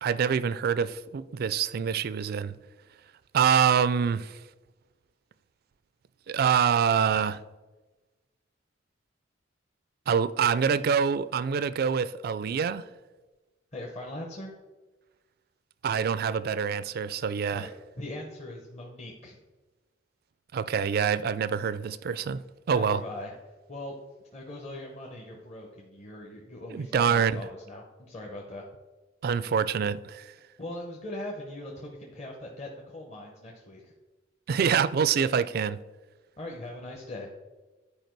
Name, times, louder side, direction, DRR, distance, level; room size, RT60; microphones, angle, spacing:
voice 1, 0.0-2.6 3.3-4.4 6.3-7.4 10.1-12.8 15.8-17.7 20.5-22.4 22.7-23.0 26.7-27.4 29.2-30.3 34.5-35.8, right 7 dB, 55° right, 0.3 m, -25 dB
voice 2, 13.7-14.5 17.5-19.4 22.7-23.3 23.7-24.0 24.3-28.6 30.6-33.9 36.4-37.3, left 1 dB, 35° left, 0.9 m, -40 dB
10.5 x 4.7 x 4.6 m
head